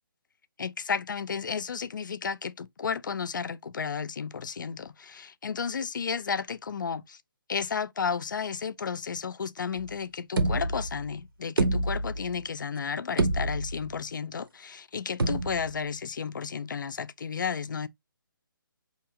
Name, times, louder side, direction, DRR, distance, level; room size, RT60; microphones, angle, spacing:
voice 1, 0.6-7.2 7.5-17.9, left 6 dB, 60° left, 0.4 m, -33 dB
sound 1, 9.8-9.9 10.4-11.1 11.6-12.4 12.8-12.9 13.2-13.9 15.2-15.8, right 2 dB, 80° right, 0.9 m, -27 dB
4.7 x 2.8 x 2.7 m
hypercardioid pair, 175°, 12 cm